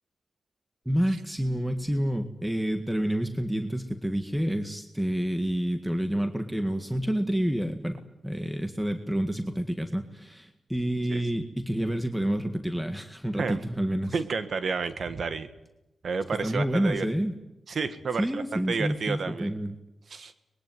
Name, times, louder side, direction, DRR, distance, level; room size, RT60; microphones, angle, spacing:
voice 1, 0.9-14.2 16.4-17.4 18.2-19.8, equal, 5° right, 7 dB, 1.8 m, -28 dB
voice 2, 14.1-15.5 16.0-17.1 17.7-19.5 20.1-20.3, right 4 dB, 65° right, 11 dB, 1.8 m, -30 dB
24.5 x 21.5 x 9.4 m, 0.95 s
cardioid pair, 75°, 0 cm